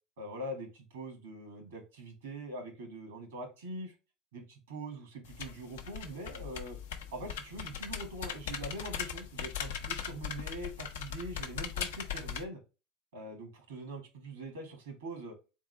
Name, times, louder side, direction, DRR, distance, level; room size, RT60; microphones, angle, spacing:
voice 1, 0.2-3.9 4.3-6.8 7.1-12.6 13.1-15.4, right 1 dB, 90° right, 5 dB, 1.5 m, -43 dB
sound 1, 5.2-12.4, left 8 dB, 85° left, 0.6 m, -39 dB
3.6 x 3.6 x 3.3 m, 0.31 s
hypercardioid pair, 95°, 0 cm